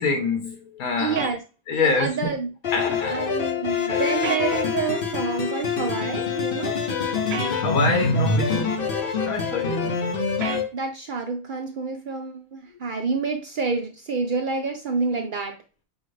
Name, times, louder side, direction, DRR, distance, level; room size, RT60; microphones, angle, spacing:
voice 1, 0.0-1.2 1.7-2.1 2.7-3.3 3.9-4.1 4.6-4.7 7.5-8.9 9.3-10.1, left 4 dB, 85° left, 1.4 m, -26 dB
voice 2, 1.0-1.4 1.7-2.5 3.1-6.8 9.5-9.6 10.7-15.6, right 4 dB, 80° right, 0.4 m, -28 dB
sound 1, 1.2-1.3 4.2-4.5 7.3-7.5 10.4-10.7, right 4 dB, 55° right, 0.8 m, -30 dB
sound 2, 2.6-10.7, left 5 dB, 50° left, 0.8 m, -25 dB
6.2 x 2.4 x 3.2 m
omnidirectional pair, 1.5 m